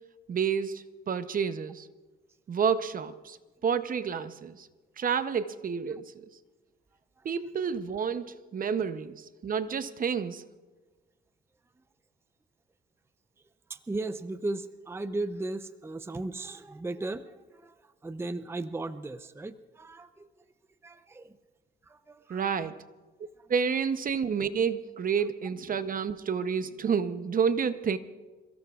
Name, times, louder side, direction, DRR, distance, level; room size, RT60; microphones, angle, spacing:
voice 1, 0.3-1.9 2.5-3.4 3.6-4.7 5.0-6.3 7.2-8.3 8.5-10.4 22.3-22.8 23.5-28.0, right 6 dB, 45° right, 0.8 m, -29 dB
voice 2, 13.7-20.3 20.8-21.4 21.9-22.6 23.4-23.5, right 2 dB, 10° right, 0.6 m, -36 dB
28.0 x 16.5 x 2.4 m
cardioid pair, 90°, 20 cm